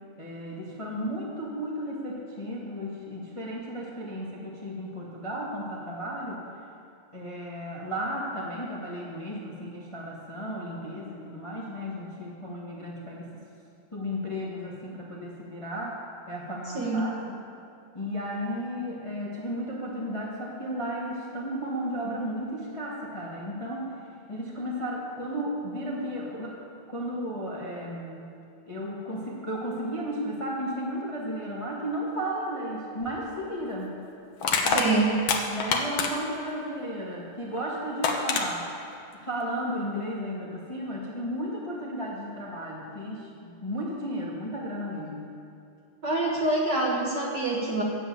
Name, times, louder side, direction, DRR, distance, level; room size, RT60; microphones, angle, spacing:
voice 1, 0.2-6.4 7.1-13.3 13.9-16.0 16.3-17.4 17.9-23.9 24.3-26.6 26.9-28.3 28.7-34.0 34.6-34.9 35.5-38.6 39.2-45.3, equal, 25° left, -4 dB, 0.7 m, -34 dB
voice 2, 16.7-17.1 34.7-35.1 46.0-47.8, right 2 dB, 55° right, -3 dB, 1.2 m, -26 dB
Crushing, 33.0-33.2 34.4-36.4 37.6-37.7 38.0-38.5, left 5 dB, 70° left, 1.2 m, -26 dB
11.5 x 7.5 x 8.8 m, 2.6 s
omnidirectional pair, 3.7 m